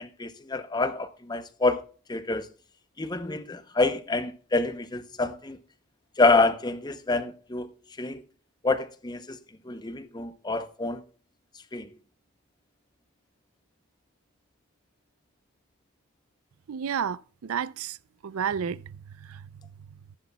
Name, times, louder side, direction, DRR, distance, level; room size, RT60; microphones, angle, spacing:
voice 1, 0.0-1.8 2.1-2.5 3.0-5.6 6.2-8.2 8.6-9.4 9.6-11.0 11.7-11.9, left 3 dB, 20° left, 0.7 m, -27 dB
voice 2, 16.7-18.0 18.2-18.8 19.2-19.4, right 7 dB, 70° right, 0.4 m, -31 dB
14.5 x 11.0 x 2.2 m
head